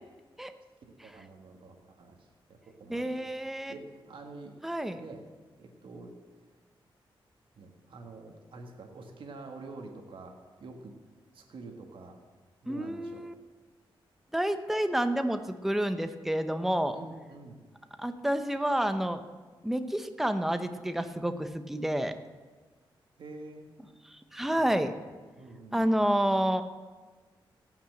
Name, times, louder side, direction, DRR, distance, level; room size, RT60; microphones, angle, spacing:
voice 1, 0.9-2.3 2.6-3.2 3.7-4.5 4.9-5.2 5.6-6.1 7.6-10.9 11.3-12.2 12.6-13.3 16.9-17.6 23.2-23.7 24.3-24.6 25.0-25.1 25.4-26.0, right 3 dB, 70° right, 2 dB, 1.7 m, -47 dB
voice 2, 2.9-3.7 4.6-5.0 12.7-13.3 14.3-17.0 18.0-19.2 19.6-22.1 24.3-24.9 25.7-26.6, right 1 dB, 5° right, 9 dB, 0.7 m, -29 dB
17.5 x 5.9 x 7.7 m, 1.4 s
wide cardioid pair, 115°, 9 cm